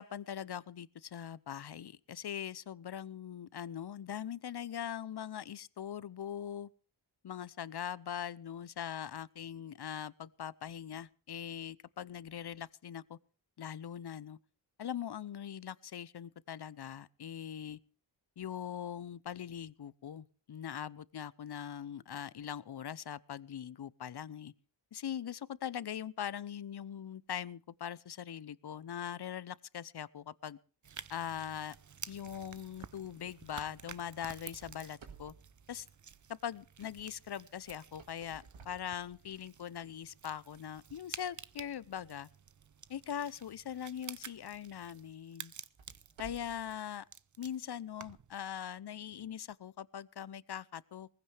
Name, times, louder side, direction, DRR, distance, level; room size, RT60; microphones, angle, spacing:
voice 1, 0.0-6.7 7.2-13.2 13.6-14.4 14.8-17.8 18.4-24.5 24.9-30.6 31.1-31.8 32.1-35.3 35.7-35.9 36.3-42.3 42.9-45.5 46.2-47.0 47.4-51.1, left 9 dB, 60° left, 0.8 m, -41 dB
sound 1, 30.8-48.3, right 7 dB, 40° right, 0.7 m, -52 dB
sound 2, 34.6-36.6 37.7-39.7 40.3-40.4 41.1-41.2 43.8-44.0 44.5-44.6 45.5-46.8, right 6 dB, 85° right, 2.1 m, -56 dB
19.5 x 15.5 x 3.3 m
cardioid pair, 55°, 46 cm